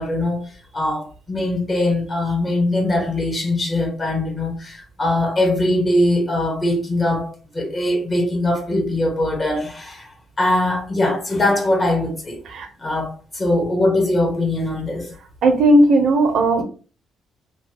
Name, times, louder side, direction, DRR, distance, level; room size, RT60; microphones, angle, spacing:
voice 1, 0.0-12.4 12.8-15.1, left 1 dB, 30° left, 1.0 m, -21 dB
voice 2, 15.4-16.6, right 1 dB, 70° right, 0.7 m, -15 dB
3.0 x 2.3 x 2.8 m
cardioid pair, 90°, 0 cm